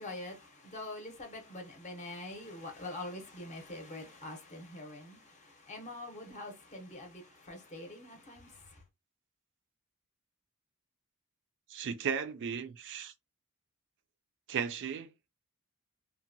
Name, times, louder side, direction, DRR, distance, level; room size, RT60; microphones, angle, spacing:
voice 1, 0.0-8.8, left 2 dB, 30° left, 0.7 m, -45 dB
voice 2, 11.7-13.1 14.5-15.1, right 6 dB, 55° right, 0.4 m, -35 dB
2.7 x 2.1 x 2.6 m
head